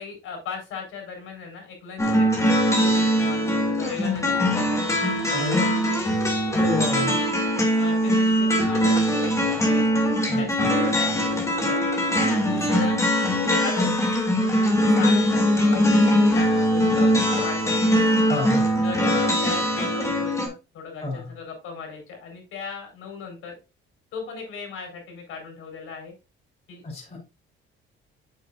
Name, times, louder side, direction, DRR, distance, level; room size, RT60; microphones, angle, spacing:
voice 1, 0.0-5.7 6.9-7.2 7.7-9.8 10.4-11.9 12.3-13.9 14.8-18.0 18.8-23.6 24.1-26.1 26.7-26.8, left 5 dB, 80° left, 2 dB, 4.7 m, -37 dB
sound 1, 2.0-20.5, equal, 15° left, 2.4 m, -21 dB
voice 2, 5.3-5.7 6.5-7.1 10.3-10.4 18.3-18.6 21.0-21.3 26.8-27.2, left 3 dB, 30° left, -2 dB, 3.4 m, -29 dB
8.5 x 6.8 x 2.5 m, 0.28 s
cardioid pair, 130°, 21 cm